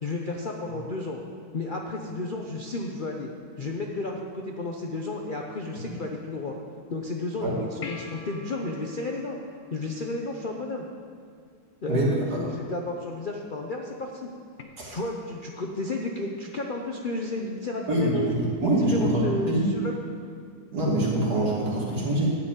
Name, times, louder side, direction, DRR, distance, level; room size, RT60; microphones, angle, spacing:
voice 1, 0.0-1.2 1.5-3.3 3.6-6.5 6.9-9.4 9.7-10.9 11.8-14.3 14.9-18.3 18.6-20.0, left 2 dB, 85° left, 1 dB, 0.4 m, -32 dB
sound 1, 7.8-10.5 14.6-14.7, left 4 dB, 45° left, 0.7 m, -44 dB
voice 2, 11.9-12.4 14.8-14.9 17.9-19.7 20.7-22.3, right 1 dB, 55° right, -5 dB, 2.8 m, -25 dB
12.0 x 4.9 x 8.8 m, 2.2 s
omnidirectional pair, 2.0 m